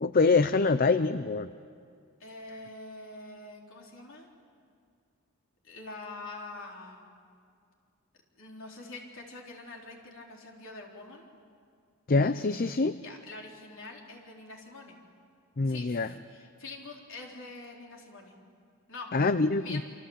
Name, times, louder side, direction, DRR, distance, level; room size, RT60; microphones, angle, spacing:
voice 1, 0.0-1.5 12.1-13.0 15.6-16.1 19.1-19.8, left 3 dB, 45° left, 12 dB, 0.6 m, -25 dB
voice 2, 2.2-4.3 5.6-7.1 8.4-11.3 13.0-15.0 15.6-18.3 18.9-19.1 19.6-19.8, left 3 dB, 65° left, 0 dB, 4.2 m, -45 dB
28.0 x 25.5 x 8.2 m, 2.2 s
head